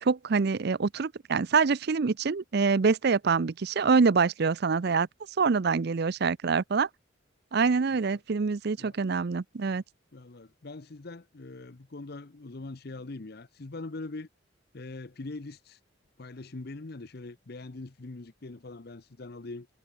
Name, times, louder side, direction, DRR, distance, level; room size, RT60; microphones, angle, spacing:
voice 1, 0.0-6.9 7.5-9.8, right 5 dB, 55° right, 0.5 m, -25 dB
voice 2, 10.1-14.3 14.7-15.8 16.2-19.7, left 2 dB, 50° left, 0.8 m, -42 dB
head